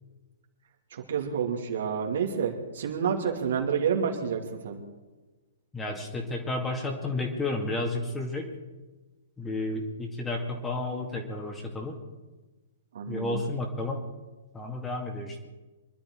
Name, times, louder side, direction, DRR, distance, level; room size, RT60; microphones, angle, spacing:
voice 1, 1.1-4.8 12.9-13.4, right 7 dB, 55° right, 1 dB, 2.6 m, -29 dB
voice 2, 5.7-8.5 9.4-12.0 13.1-14.0 14.5-15.5, left 2 dB, 10° left, 1 dB, 2.2 m, -32 dB
25.0 x 12.0 x 4.7 m, 1.2 s
figure-of-eight pair, 115°, 0 cm